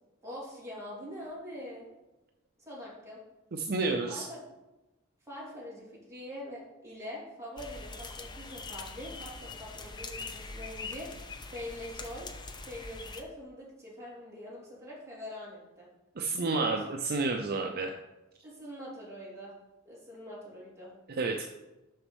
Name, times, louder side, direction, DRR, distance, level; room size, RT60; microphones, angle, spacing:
voice 1, 0.2-1.9 2.6-3.2 4.1-4.4 5.3-12.3 12.6-15.9 16.6-16.8 18.4-19.5 19.8-20.9, left 1 dB, 15° right, -7 dB, 3.0 m, -44 dB
voice 2, 3.5-4.3 16.2-18.0 21.1-21.5, right 3 dB, 50° right, 3 dB, 0.6 m, -30 dB
sound 1, 7.6-13.2, left 3 dB, 20° left, 0.6 m, -43 dB
6.6 x 5.1 x 6.3 m, 1.0 s
head